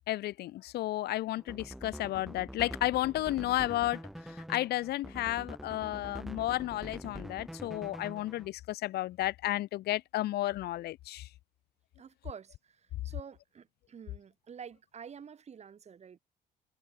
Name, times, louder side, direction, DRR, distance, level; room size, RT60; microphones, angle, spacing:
voice 1, 0.1-11.3, left 15 dB, 70° left, 1.3 m, -33 dB
sound 1, 1.4-8.5, equal, ahead, 4.4 m, -45 dB
voice 2, 12.0-16.2, right 7 dB, 40° right, 7.8 m, -49 dB
cardioid pair, 110°, 17 cm